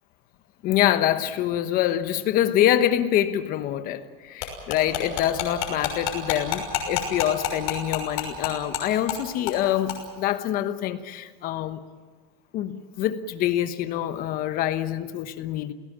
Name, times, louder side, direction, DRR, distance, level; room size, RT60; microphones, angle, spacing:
voice 1, 0.6-11.8 12.5-15.7, left 11 dB, 30° left, 10 dB, 1.2 m, -25 dB
sound 1, 4.4-8.8 9.1-9.2 9.5-9.6 9.9-10.0, left 12 dB, 50° left, 6.2 m, -27 dB
28.5 x 18.0 x 7.5 m, 1.4 s
supercardioid pair, 165°, 29 cm